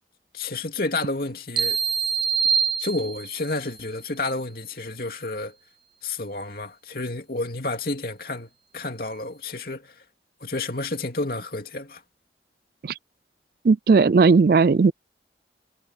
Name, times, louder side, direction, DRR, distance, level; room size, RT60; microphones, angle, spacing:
voice 1, 0.3-1.8 2.8-5.6 6.0-10.0 10.4-12.0, left 2 dB, 55° left, 2.8 m, -30 dB
sound 1, 1.6-3.5, right 6 dB, 25° right, 0.7 m, -24 dB
voice 2, 13.6-14.9, right 4 dB, 55° right, 0.4 m, -16 dB
head